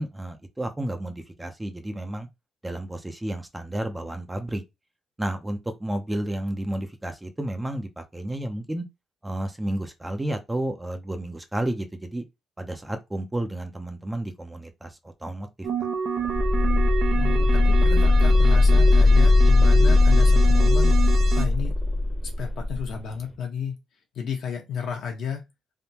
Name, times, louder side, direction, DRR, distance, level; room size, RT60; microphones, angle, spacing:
voice 1, 0.0-2.3 2.6-4.6 5.2-8.8 9.2-12.2 12.6-14.9 15.2-15.9, right 1 dB, 10° right, 0.6 m, -31 dB
sound 1, 15.6-21.5, right 6 dB, 60° right, 0.7 m, -29 dB
sound 2, 16.2-22.8, left 2 dB, 15° left, 0.9 m, -18 dB
voice 2, 17.1-20.9 21.3-21.7 22.4-23.7 24.1-25.4, left 7 dB, 70° left, 1.0 m, -32 dB
3.5 x 2.2 x 2.8 m
cardioid pair, 90°, 0 cm